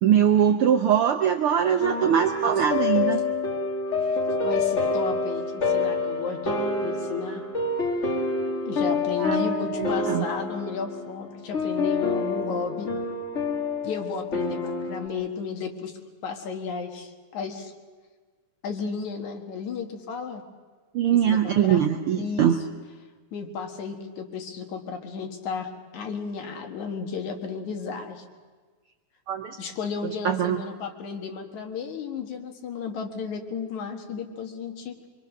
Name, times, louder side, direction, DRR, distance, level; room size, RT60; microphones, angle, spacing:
voice 1, 0.0-3.2 9.2-9.4 9.8-10.2 20.9-22.5 29.3-29.6 30.2-30.6, right 9 dB, 75° right, 5 dB, 1.3 m, -22 dB
sound 1, 1.8-15.1, left 3 dB, 30° left, 1.4 m, -27 dB
voice 2, 4.0-7.4 8.7-12.9 13.8-15.9 16.2-17.7 18.6-20.4 21.1-21.8 22.2-22.6 23.3-28.2 29.6-35.0, left 5 dB, 75° left, 4 dB, 3.0 m, -33 dB
24.0 x 23.5 x 6.4 m, 1.4 s
omnidirectional pair, 3.4 m